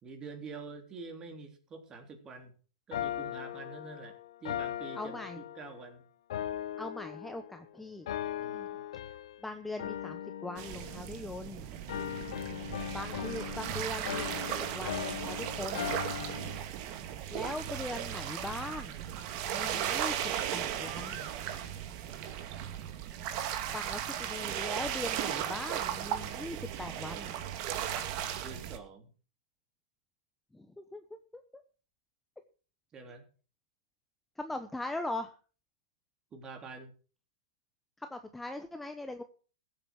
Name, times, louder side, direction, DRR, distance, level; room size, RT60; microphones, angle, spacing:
voice 1, 0.0-2.5 2.9-6.0 8.4-8.8 11.9-12.4 16.1-16.6 28.4-29.1 32.9-33.2 36.3-36.9, right 4 dB, 20° right, 5 dB, 3.3 m, -47 dB
sound 1, 2.9-5.9 6.3-7.6 8.1-9.5 9.8-11.5 11.9-16.6, left 11 dB, 65° left, 1.1 m, -39 dB
voice 2, 4.9-5.4 6.8-8.1 9.4-11.7 12.9-16.0 17.3-19.0 19.4-20.2 20.5-21.3 23.7-27.4 30.5-31.4 34.4-35.3 38.0-39.2, left 2 dB, 5° left, 7 dB, 1.0 m, -40 dB
sound 2, 10.6-28.8, right 10 dB, 45° right, 2.1 m, -36 dB
15.0 x 8.1 x 6.0 m, 0.38 s
hypercardioid pair, 130°, 3 cm